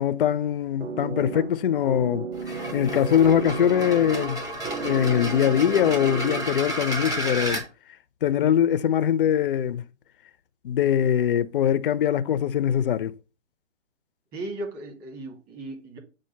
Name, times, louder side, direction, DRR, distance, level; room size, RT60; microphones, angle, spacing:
voice 1, 0.0-2.3 2.7-4.4 4.8-7.6 8.2-9.8 10.6-13.2, left 9 dB, 45° left, 0.4 m, -22 dB
sound 1, 0.8-6.8, right 5 dB, 50° right, 1.4 m, -34 dB
sound 2, 2.3-7.6, right 1 dB, 10° right, 0.9 m, -32 dB
voice 2, 14.3-16.0, right 2 dB, 25° right, 2.1 m, -36 dB
7.4 x 2.6 x 5.6 m
hypercardioid pair, 140°, 38 cm